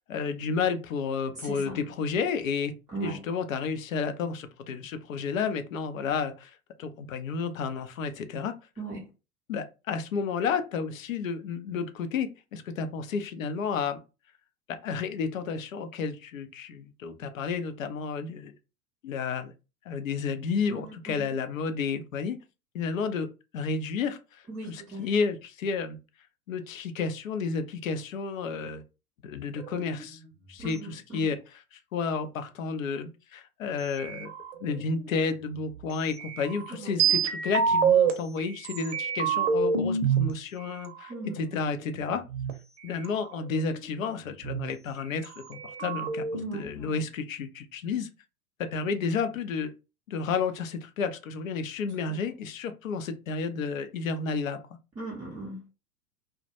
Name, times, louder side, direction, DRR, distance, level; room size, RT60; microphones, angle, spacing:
voice 1, 0.1-2.7 3.0-8.5 9.5-14.0 14.8-18.5 19.0-19.5 19.9-22.4 22.7-26.0 26.5-28.8 29.2-30.2 30.5-34.3 34.6-42.2 42.8-48.1 48.6-49.7 50.1-54.6, left 5 dB, 60° left, 0.6 m, -31 dB
voice 2, 1.4-1.8 2.9-3.2 8.8-9.0 20.7-21.3 24.5-25.1 30.6-31.3 36.7-37.2 41.1-41.4 46.4-47.0 52.1-52.2 55.0-55.7, right 3 dB, 10° right, 0.5 m, -39 dB
sound 1, 29.6-30.3 34.0-35.3 36.2-38.1 38.6-40.3 41.1-42.5 43.0-43.1 43.4-44.7 45.2-45.3 45.5-46.5, right 6 dB, 50° right, 0.7 m, -27 dB
2.1 x 2.1 x 2.9 m
figure-of-eight pair, 95°, 45 cm